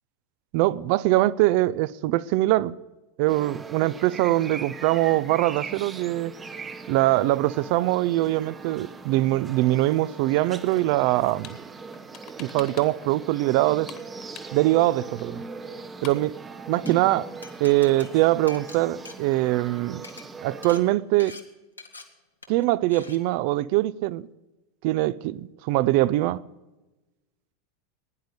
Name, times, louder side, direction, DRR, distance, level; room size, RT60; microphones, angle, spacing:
voice 1, 0.5-2.7 3.2-6.3 6.9-11.6 12.4-13.9 14.5-15.4 16.0-16.4 16.7-17.3 17.6-20.0 20.4-21.3 22.5-24.3 24.8-26.4, right 16 dB, 50° right, 0.5 m, -23 dB
sound 1, 3.3-20.8, right 4 dB, 20° right, 1.1 m, -40 dB
sound 2, 11.1-11.6 11.9-13.1 13.4-14.9 15.2-15.3 15.5-15.6 15.8-16.3, left 11 dB, 40° left, 1.6 m, -45 dB
Glass, 16.6-16.9 17.4-19.7 20.0-20.2 20.6-20.8 21.2-21.4 21.8-22.0 22.4-22.6 22.9-23.2, left 3 dB, 85° left, 1.4 m, -44 dB
16.5 x 10.5 x 6.6 m
figure-of-eight pair, 85°, 0 cm